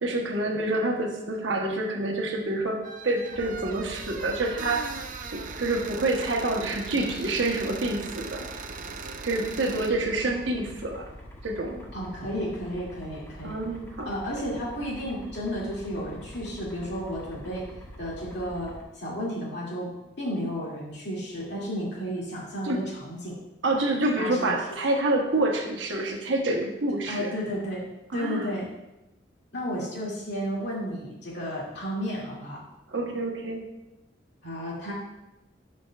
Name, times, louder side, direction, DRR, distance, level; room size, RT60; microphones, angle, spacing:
voice 1, 0.0-4.9 5.3-8.4 9.2-11.1 11.4-11.9 13.4-14.1 22.6-22.8 23.6-27.3 28.1-28.5 32.9-33.6, right 2 dB, 75° right, 1 dB, 1.1 m, -27 dB
sound 1, 2.8-9.9, right 5 dB, 45° right, 0.5 m, -39 dB
sound 2, 3.3-18.8, equal, 15° left, 1.1 m, -45 dB
voice 2, 11.9-13.6 14.1-17.7 18.0-23.4 24.2-24.5 27.1-28.7 29.5-32.6 34.4-34.9, equal, 65° left, -5 dB, 2.5 m, -33 dB
11.0 x 5.2 x 2.4 m, 0.95 s
head